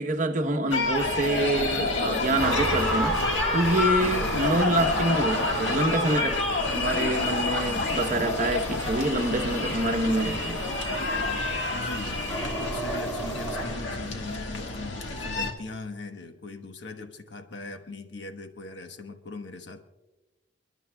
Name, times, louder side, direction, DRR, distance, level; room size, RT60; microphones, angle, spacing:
voice 1, 0.0-3.2 3.5-10.6, right 2 dB, 45° right, 0.9 m, -26 dB
sound 1, 0.7-15.5, left 3 dB, 90° left, 1.5 m, -29 dB
sound 2, 2.4-13.6, right 1 dB, 5° left, 2.8 m, -34 dB
voice 2, 4.0-4.3 11.7-19.8, left 3 dB, 70° left, 1.1 m, -40 dB
29.5 x 11.5 x 2.2 m
head